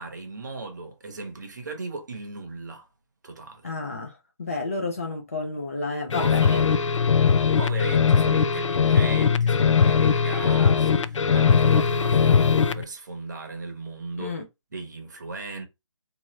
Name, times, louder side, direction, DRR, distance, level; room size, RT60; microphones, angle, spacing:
voice 1, 0.0-2.9 3.2-3.7 6.1-6.7 7.6-14.3 14.7-15.6, right 3 dB, 35° right, 0.9 m, -37 dB
voice 2, 3.6-6.7 14.2-14.4, left 3 dB, 30° left, 0.6 m, -31 dB
sound 1, 6.1-12.8, left 6 dB, 75° left, 0.4 m, -20 dB
2.9 x 2.4 x 3.1 m
hypercardioid pair, 175°, 16 cm